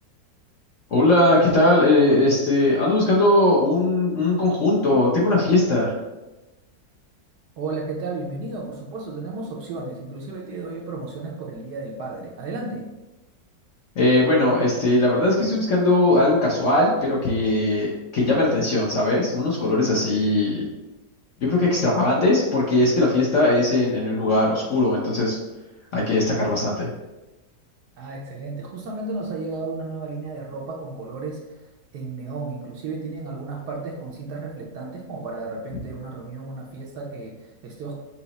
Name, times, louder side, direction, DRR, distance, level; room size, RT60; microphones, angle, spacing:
voice 1, 0.9-5.9 14.0-20.7 21.4-25.4 25.9-26.9, left 2 dB, 60° left, -4 dB, 0.8 m, -19 dB
voice 2, 7.6-12.9 28.0-31.4 31.9-38.0, right 3 dB, 70° right, -1 dB, 1.1 m, -33 dB
5.7 x 2.0 x 3.9 m, 1.1 s
omnidirectional pair, 2.0 m